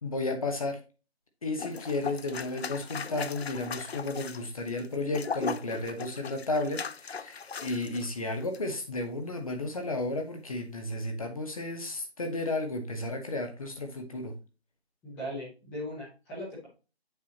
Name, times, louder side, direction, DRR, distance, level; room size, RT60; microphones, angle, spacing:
voice 1, 0.0-0.8 1.4-14.3, left 2 dB, 35° left, 5 dB, 1.2 m, -33 dB
sound 1, 1.6-8.1 8.4-8.6, left 5 dB, 70° left, 0.7 m, -38 dB
voice 2, 15.0-16.7, equal, 5° left, -7 dB, 1.0 m, -38 dB
8.4 x 5.5 x 2.9 m, 0.32 s
figure-of-eight pair, 165°, 32 cm